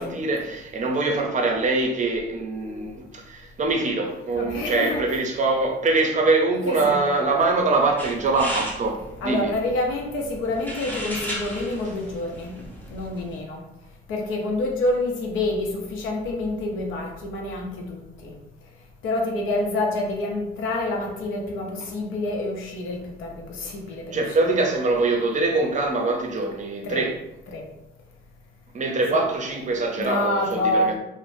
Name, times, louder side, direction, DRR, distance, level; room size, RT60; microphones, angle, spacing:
voice 1, 0.0-9.5 24.1-27.2 28.7-31.0, right 3 dB, 40° right, 2 dB, 0.6 m, -23 dB
voice 2, 4.3-5.0 6.7-7.0 9.2-12.6 12.9-13.6 14.1-18.3 19.0-24.6 26.8-27.1 27.5-27.6 30.0-31.0, left 2 dB, 90° left, 1 dB, 0.6 m, -27 dB
sound 1, 8.0-13.4, equal, 10° left, 0.7 m, -36 dB
3.2 x 2.0 x 2.6 m, 0.88 s
cardioid pair, 90°, 20 cm